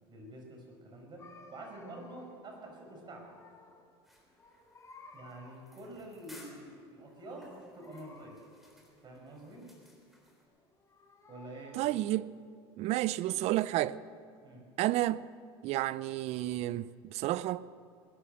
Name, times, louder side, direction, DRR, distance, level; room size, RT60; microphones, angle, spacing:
voice 1, 0.1-3.3 5.1-8.4 9.0-9.7 11.3-11.9 14.4-14.6, right 1 dB, 35° right, 5.0 m, -47 dB
sound 1, 1.2-2.5 2.8-3.9 4.2-5.8 7.7-8.9 10.5-12.0, left 3 dB, 25° left, 2.8 m, -57 dB
sound 2, 4.0-10.4, left 1 dB, ahead, 3.8 m, -60 dB
voice 2, 11.7-12.3 12.8-14.0 14.8-15.3 15.6-17.7, right 15 dB, 55° right, 0.5 m, -31 dB
20.0 x 11.0 x 6.5 m
supercardioid pair, 95°, 13 cm